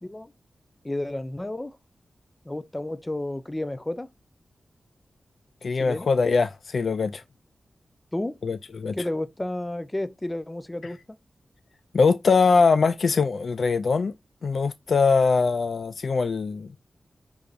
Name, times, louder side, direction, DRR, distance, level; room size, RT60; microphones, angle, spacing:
voice 1, 0.0-0.3 0.8-1.8 2.4-4.1 5.7-6.1 8.1-8.4 8.9-11.2, left 1 dB, 20° left, 0.5 m, -31 dB
voice 2, 5.6-7.2 8.4-9.0 11.9-14.1 14.4-16.8, left 4 dB, 65° left, 0.3 m, -22 dB
5.2 x 3.3 x 2.4 m
wide cardioid pair, 75°, 0 cm